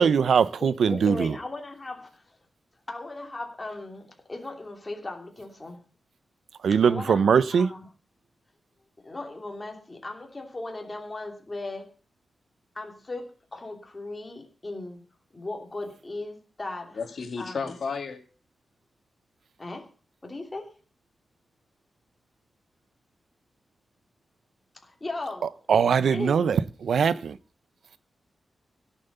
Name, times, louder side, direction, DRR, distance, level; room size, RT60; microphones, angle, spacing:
voice 1, 0.0-1.3 6.6-7.7 25.4-27.4, right 6 dB, 80° right, 0.7 m, -22 dB
voice 2, 0.6-2.4 2.9-5.8 6.8-7.8 9.0-11.9 12.7-15.0 15.3-17.0 17.4-17.8 19.6-19.9 20.2-20.7 24.8-25.5 26.1-26.5, left 2 dB, 20° left, 2.9 m, -37 dB
voice 3, 17.0-18.2, left 5 dB, 55° left, 2.5 m, -32 dB
17.0 x 7.5 x 6.7 m
wide cardioid pair, 175°, 0 cm